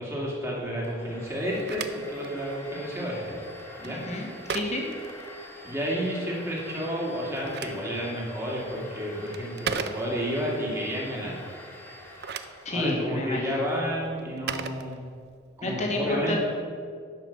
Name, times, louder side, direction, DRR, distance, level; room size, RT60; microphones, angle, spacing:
voice 1, 0.0-3.4 3.8-4.0 5.6-11.3 12.7-15.0 15.6-16.4, equal, 15° right, -4 dB, 2.3 m, -31 dB
Domestic sounds home sounds, 0.8-12.9, left 1 dB, 10° left, 1.9 m, -45 dB
Telephone, 1.3-5.8 7.1-10.5 11.9-15.5, right 6 dB, 55° right, 0.5 m, -39 dB
voice 2, 4.1-4.8 12.6-13.5 15.6-16.4, left 1 dB, 35° left, 0 dB, 1.7 m, -29 dB
11.0 x 5.7 x 7.3 m, 2.2 s
head